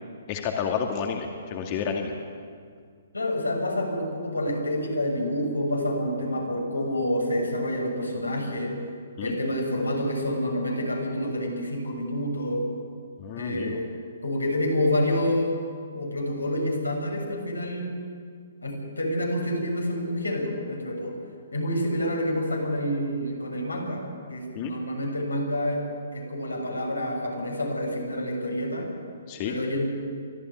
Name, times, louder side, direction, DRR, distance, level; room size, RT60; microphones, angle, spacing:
voice 1, 0.3-2.1 9.2-9.4 13.2-13.8 24.5-24.7 29.3-29.6, left 7 dB, 35° left, 2 dB, 2.2 m, -30 dB
voice 2, 3.1-8.7 9.2-12.6 13.4-13.9 14.2-15.6 15.9-18.0 18.6-21.1 21.5-24.0 24.3-25.8 26.1-28.9 29.4-29.9, left 1 dB, 90° left, 0 dB, 6.8 m, -28 dB
23.5 x 14.5 x 9.3 m, 2.1 s
figure-of-eight pair, 130°, 0 cm